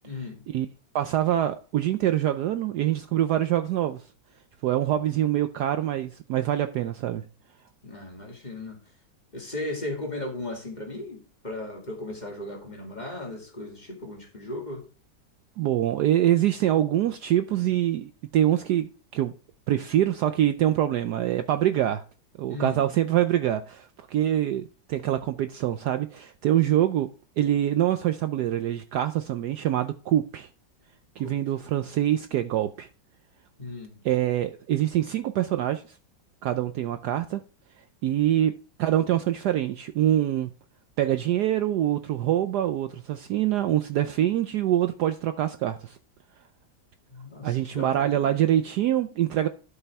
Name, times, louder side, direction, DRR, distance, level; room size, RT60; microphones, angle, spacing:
voice 1, 0.0-0.5 7.8-8.8 9.3-14.8 22.5-22.8 31.2-31.4 33.6-34.0 47.1-48.3, left 2 dB, 20° left, 2.2 m, -36 dB
voice 2, 0.9-4.0 4.6-7.2 15.6-19.3 19.7-22.0 22.4-27.1 27.4-30.5 31.2-32.9 34.0-36.0 36.4-37.4 38.0-38.5 38.8-40.5 41.0-46.0 47.4-49.5, right 12 dB, 70° right, 1.0 m, -25 dB
12.0 x 5.6 x 3.5 m
omnidirectional pair, 2.1 m